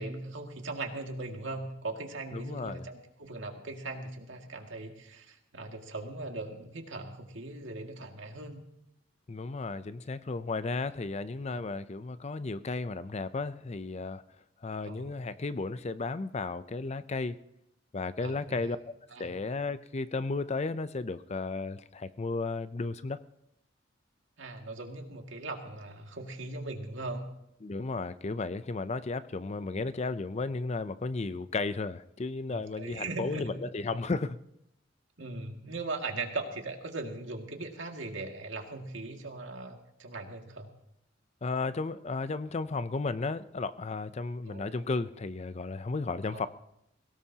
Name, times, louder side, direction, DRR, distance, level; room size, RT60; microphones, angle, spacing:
voice 1, 0.0-8.6 14.8-15.1 18.2-18.7 19.1-19.3 24.4-27.3 32.5-33.6 35.2-40.7 44.5-44.7 46.3-46.4, right 2 dB, 90° right, 2.2 m, -39 dB
voice 2, 2.3-2.8 9.3-14.2 14.6-17.4 17.9-18.8 19.2-23.2 27.6-34.4 41.4-46.5, left 3 dB, 35° left, 0.5 m, -34 dB
22.0 x 17.5 x 2.9 m
head